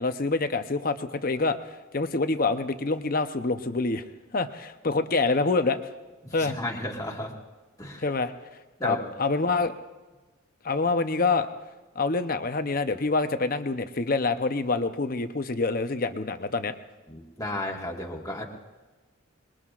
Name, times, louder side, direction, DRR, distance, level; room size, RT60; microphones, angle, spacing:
voice 1, 0.0-1.6 1.9-4.1 4.3-5.8 6.3-6.6 8.0-8.3 8.8-9.7 10.6-11.5 12.0-16.8, left 3 dB, 40° left, 9 dB, 0.7 m, -26 dB
voice 2, 6.2-7.3 7.8-8.1 8.8-9.1 17.1-18.4, left 1 dB, 15° left, -1 dB, 1.7 m, -33 dB
26.0 x 21.5 x 2.5 m, 1.2 s
head